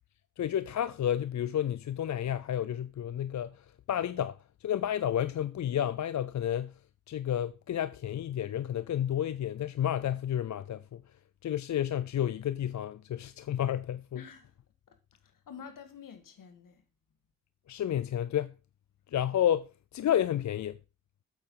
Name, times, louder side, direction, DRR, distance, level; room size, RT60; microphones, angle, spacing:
voice 1, 0.4-6.8 7.1-11.0 11.4-14.2 17.7-18.6 19.1-20.8, left 10 dB, 60° left, 0.6 m, -31 dB
voice 2, 14.1-14.6 14.9-16.8, left 7 dB, 80° left, 1.8 m, -49 dB
8.5 x 7.8 x 3.8 m
supercardioid pair, 50°, 32 cm